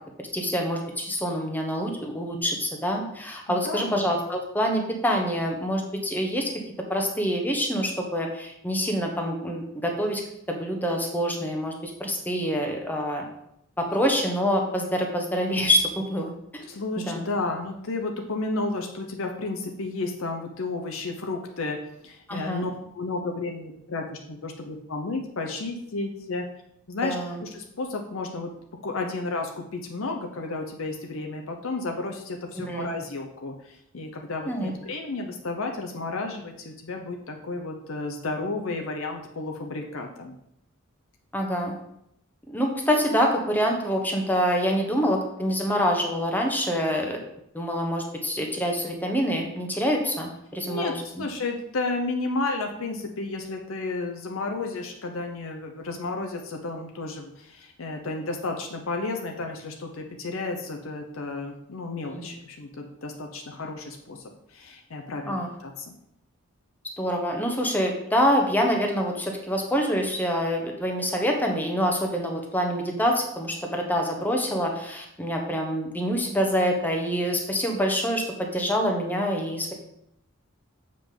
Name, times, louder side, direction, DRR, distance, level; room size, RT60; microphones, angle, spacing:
voice 1, 0.2-6.5 6.9-10.2 10.5-13.3 13.8-16.7 17.0-17.2 22.3-22.7 27.0-27.4 32.7-32.9 34.5-34.7 41.3-41.8 42.5-47.2 47.5-51.2 62.1-62.3 65.3-65.5 67.0-79.7, equal, 10° left, 2 dB, 0.9 m, -26 dB
voice 2, 3.6-4.0 16.7-21.8 22.0-26.5 26.9-28.5 28.8-40.3 50.7-64.2 64.5-65.9, left 3 dB, 70° left, 3 dB, 0.7 m, -32 dB
7.1 x 5.0 x 3.7 m, 0.77 s
head